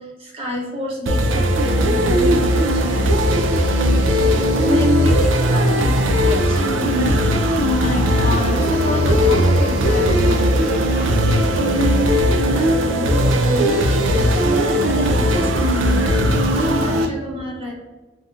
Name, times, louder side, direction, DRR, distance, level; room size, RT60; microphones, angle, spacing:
voice 1, 0.0-3.3 4.0-7.3 7.8-8.1 11.6-17.7, right 1 dB, 30° right, -3 dB, 1.0 m, -28 dB
sound 1, 1.1-17.1, equal, 80° right, 0.5 m, -18 dB
voice 2, 7.6-11.2, left 3 dB, 35° left, 2 dB, 0.4 m, -27 dB
5.1 x 2.3 x 2.8 m, 1.2 s
head